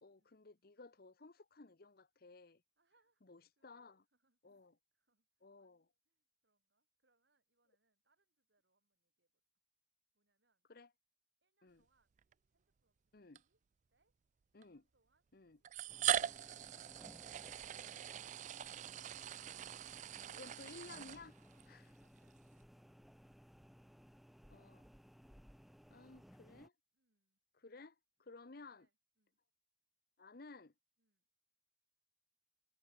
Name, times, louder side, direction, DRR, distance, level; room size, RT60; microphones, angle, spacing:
voice 1, 0.0-2.6 3.3-4.0 4.4-4.7 5.4-5.8 10.7-10.9 11.6-11.8 13.1-13.4 14.5-14.8 15.3-15.6 20.3-21.3 21.7-21.9 24.5-24.9 25.9-26.7 27.6-28.9 30.2-30.7, left 3 dB, 60° left, 1.0 m, -56 dB
voice 2, 2.8-9.4 10.1-10.7 11.4-12.2 12.5-13.6 13.9-14.1 14.6-15.3 15.5-16.6 21.5-23.4 26.9-27.4 28.5-29.4 31.0-31.2, right 3 dB, 75° right, 7.4 m, -84 dB
sound 1, 12.2-12.3 13.4-13.5 14.6-14.7 15.6-21.6, right 10 dB, 45° right, 0.3 m, -41 dB
sound 2, 15.9-26.7, equal, ahead, 1.0 m, -61 dB
head